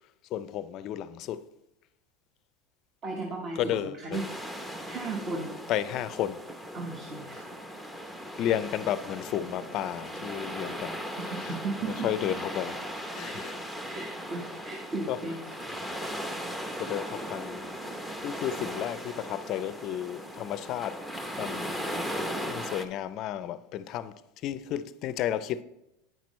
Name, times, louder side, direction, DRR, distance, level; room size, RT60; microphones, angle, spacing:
voice 1, 0.3-1.4 3.6-4.2 5.7-6.4 8.4-11.0 11.3-11.5 11.9-12.8 13.1-13.6 15.1-15.2 16.8-17.6 18.2-21.0 21.4-21.9 22.3-24.1 24.4-25.6, left 11 dB, 45° left, 0.4 m, -32 dB
voice 2, 3.0-4.3 4.9-5.6 6.7-7.5 11.3-12.6 13.2-13.5 13.8-15.4, right 3 dB, 40° right, 1.1 m, -36 dB
sound 1, 4.1-22.9, equal, 5° right, 0.7 m, -38 dB
9.1 x 6.0 x 3.1 m
supercardioid pair, 125°, 0 cm